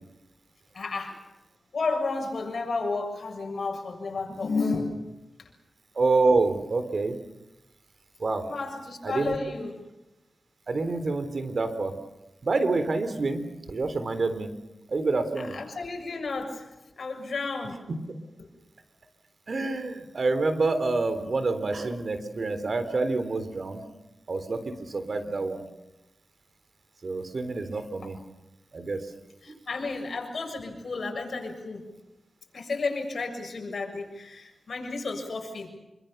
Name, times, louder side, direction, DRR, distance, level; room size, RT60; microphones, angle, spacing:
voice 1, 0.7-1.2 1.7-5.0 8.4-9.8 15.4-16.7 17.0-17.8 18.4-18.5 29.4-31.9 32.5-35.7, left 3 dB, 65° left, 3 dB, 7.2 m, -32 dB
voice 2, 6.0-7.2 8.2-8.4 9.0-9.4 10.7-11.9 12.4-14.5 14.9-15.6 19.5-23.8 24.3-25.6 27.0-28.2 28.7-29.0, right 3 dB, 60° right, 10 dB, 3.8 m, -27 dB
27.5 x 25.0 x 6.9 m, 0.95 s
cardioid pair, 65°, 0 cm